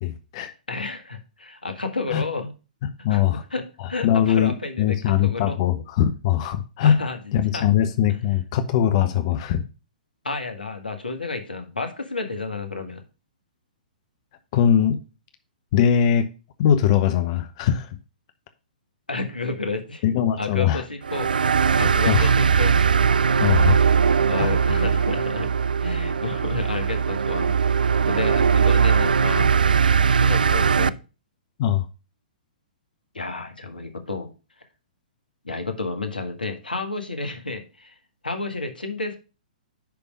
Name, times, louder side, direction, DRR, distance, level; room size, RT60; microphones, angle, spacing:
voice 1, 0.0-0.5 2.1-2.2 2.8-3.4 3.8-7.0 7.3-9.6 14.5-15.0 15.7-16.3 16.6-18.0 20.0-20.8 22.1-22.3 23.4-23.8 24.4-24.5 31.6-31.9, left 9 dB, 45° left, 0.7 m, -21 dB
voice 2, 0.7-2.5 3.1-3.2 3.5-3.6 3.9-5.6 6.8-7.2 7.5-7.7 10.2-13.0 19.1-20.0 20.4-21.3 21.6-22.8 23.5-23.6 24.2-25.5 25.8-27.5 27.8-29.5 30.2-30.9 33.1-34.3 35.4-37.9 38.2-39.2, left 3 dB, 85° left, 1.6 m, -31 dB
sound 1, 21.0-30.9, right 6 dB, 75° right, 0.3 m, -20 dB
10.0 x 3.6 x 5.2 m
figure-of-eight pair, 120°, 5 cm